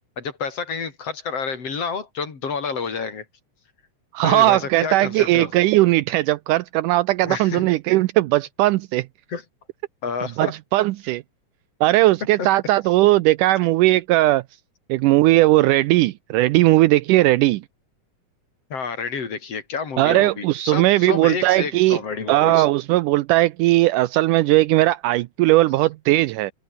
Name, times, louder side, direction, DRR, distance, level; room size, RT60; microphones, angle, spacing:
voice 1, 0.2-3.2 4.2-5.5 7.2-7.7 9.3-9.4 10.0-10.5 12.4-12.5 18.7-22.7, left 5 dB, 45° left, 4.5 m, -29 dB
voice 2, 4.1-9.1 10.4-11.2 11.8-14.4 14.9-17.6 20.0-22.0 22.3-26.5, right 17 dB, 80° right, 2.1 m, -18 dB
open air
omnidirectional pair, 3.8 m